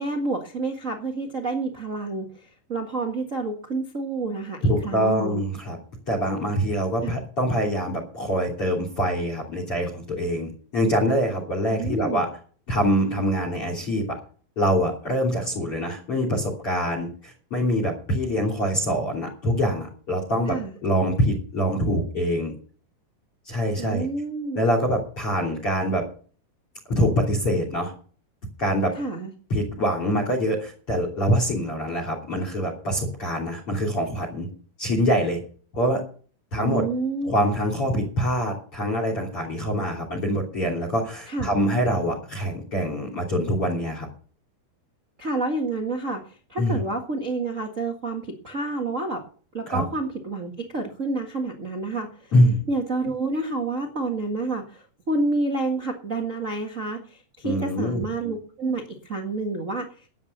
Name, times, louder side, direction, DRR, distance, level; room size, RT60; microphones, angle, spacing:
voice 1, 0.0-2.3 2.7-5.4 7.0-7.2 11.7-12.2 20.5-20.7 23.8-24.7 28.9-29.3 36.5-37.3 41.3-41.5 45.2-49.2 49.5-52.3 52.7-59.9, right 3 dB, 80° right, 2 dB, 0.7 m, -29 dB
voice 2, 4.6-5.8 6.1-12.3 12.7-14.2 14.6-20.6 20.8-22.5 23.5-24.1 24.6-26.0 27.0-27.9 28.6-28.9 29.5-34.5 34.8-35.4 35.7-36.0 36.5-36.8 37.2-44.1 46.6-46.8 49.6-49.8 52.3-52.6 57.4-58.0, equal, 35° left, 5 dB, 3.7 m, -24 dB
12.5 x 9.7 x 6.7 m, 0.42 s
omnidirectional pair, 4.7 m